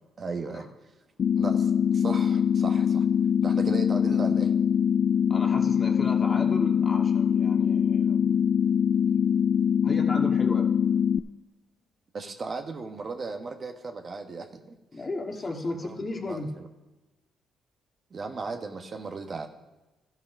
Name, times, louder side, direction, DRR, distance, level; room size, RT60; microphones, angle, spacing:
voice 1, 0.2-0.7 1.4-3.0 3.4-4.5 12.1-14.8 15.7-16.5 18.1-19.5, right 4 dB, 45° right, 4 dB, 1.3 m, -36 dB
sound 1, 1.2-11.2, left 8 dB, 55° left, 0.3 m, -23 dB
voice 2, 5.3-8.4 9.8-10.7 14.9-16.5, left 2 dB, 30° left, 2 dB, 1.8 m, -34 dB
13.0 x 5.7 x 6.1 m, 1.1 s
cardioid pair, 90°, 0 cm